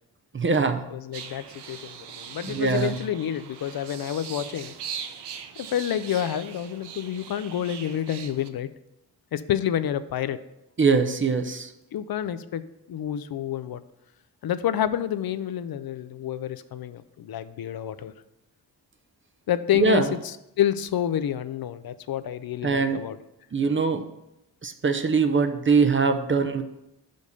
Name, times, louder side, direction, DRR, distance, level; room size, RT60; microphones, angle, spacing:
voice 1, 0.3-0.9 2.4-3.0 10.8-11.7 19.7-20.1 22.6-23.0 23.5-24.0 24.6-26.6, right 5 dB, 30° right, 7 dB, 0.6 m, -22 dB
voice 2, 0.9-4.7 5.6-8.7 9.3-10.4 11.9-12.6 12.9-13.8 14.4-18.1 19.5-23.2, left 10 dB, 65° left, 13 dB, 0.5 m, -28 dB
sound 1, 1.1-8.5, right 7 dB, 90° right, 0.7 m, -40 dB
5.3 x 5.2 x 6.5 m, 0.87 s
wide cardioid pair, 110°, 39 cm